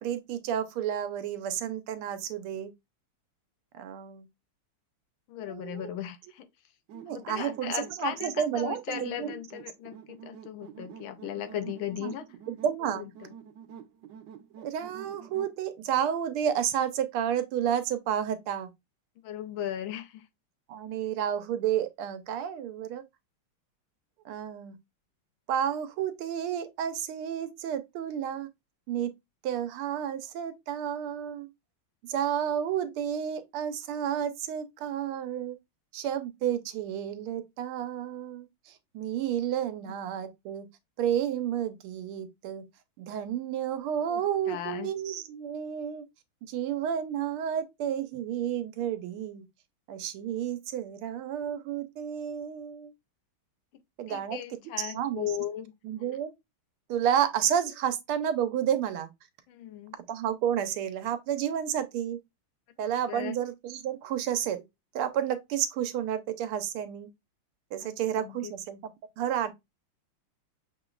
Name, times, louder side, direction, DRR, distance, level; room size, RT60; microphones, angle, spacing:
voice 1, 0.0-2.7 3.7-4.2 5.5-5.8 6.9-9.4 12.0-12.1 12.5-13.0 14.6-18.7 20.7-23.0 24.2-24.8 25.5-28.5 28.9-29.1 29.4-31.5 32.0-35.6 35.9-38.5 38.9-40.7 41.0-42.6 43.0-46.0 46.5-49.4 49.9-52.9 54.0-54.4 54.8-55.3 55.8-56.3 56.9-59.1 60.1-62.2 62.8-64.6 64.9-67.1 67.7-68.9 69.2-69.5, right 9 dB, 85° right, 1.5 m, -31 dB
voice 2, 5.3-6.5 7.1-12.2 12.8-13.3 19.2-20.3 39.8-39.9 44.0-44.9 54.1-55.7 59.5-59.9 63.1-63.3 67.8-68.5, left 10 dB, 75° left, 1.4 m, -37 dB
sound 1, 6.9-15.6, right 8 dB, 65° right, 1.2 m, -49 dB
6.9 x 3.0 x 2.3 m
omnidirectional pair, 2.4 m